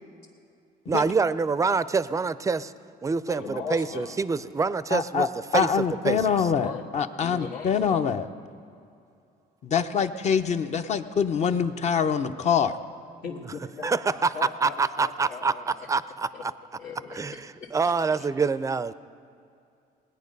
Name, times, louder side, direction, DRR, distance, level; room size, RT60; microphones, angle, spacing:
voice 1, 0.9-2.7 3.0-5.3 5.5-6.5 13.8-14.3 14.6-16.5 17.1-18.9, right 4 dB, 20° right, 15 dB, 0.4 m, -26 dB
voice 2, 3.3-4.2 6.6-6.8 7.2-8.0 13.2-15.9 16.3-16.4 16.8-17.7, left 5 dB, 80° left, -5 dB, 1.6 m, -38 dB
voice 3, 4.9-5.3 5.5-8.3 9.6-12.7, left 6 dB, 40° left, 9 dB, 0.7 m, -25 dB
20.0 x 9.2 x 5.3 m, 2.5 s
cardioid pair, 110°, 17 cm